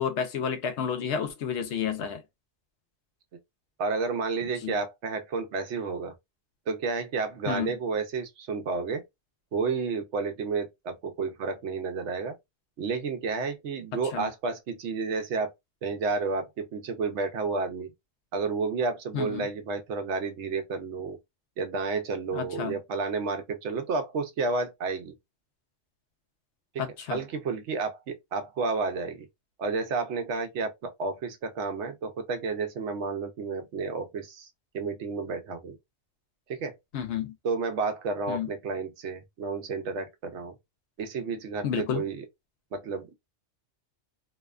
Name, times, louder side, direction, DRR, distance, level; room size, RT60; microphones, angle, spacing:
voice 1, 0.0-2.2 4.6-4.8 7.5-7.8 14.1-14.3 19.1-19.5 22.3-22.8 26.8-27.2 36.9-37.3 38.3-38.5 41.6-42.0, left 7 dB, 70° left, 0.9 m, -30 dB
voice 2, 3.8-6.1 6.7-9.0 9.5-12.3 12.8-15.5 15.8-17.9 18.3-21.2 21.6-25.1 27.1-29.3 29.6-34.5 34.7-35.8 36.5-36.8 37.4-40.5 41.0-42.2 42.7-43.1, right 4 dB, 75° right, 0.9 m, -31 dB
2.8 x 2.2 x 2.3 m
omnidirectional pair, 1.2 m